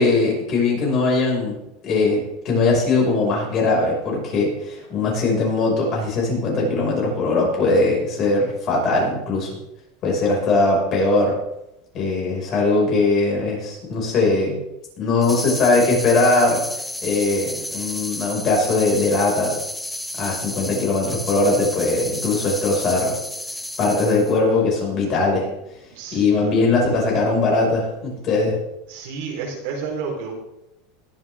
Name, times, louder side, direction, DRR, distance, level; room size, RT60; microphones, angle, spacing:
voice 1, 0.0-1.6 1.8-9.5 10.0-11.4 11.9-14.6 15.0-16.6 17.0-19.6 20.2-23.2 23.8-25.5 26.1-28.6, left 3 dB, 40° left, -2 dB, 5.9 m, -20 dB
sound 1, 15.2-24.4, left 1 dB, 5° left, 0.7 m, -32 dB
voice 2, 25.9-26.5 28.9-30.3, right 5 dB, 70° right, -1 dB, 4.2 m, -31 dB
20.5 x 8.4 x 3.7 m, 0.87 s
supercardioid pair, 145°, 0 cm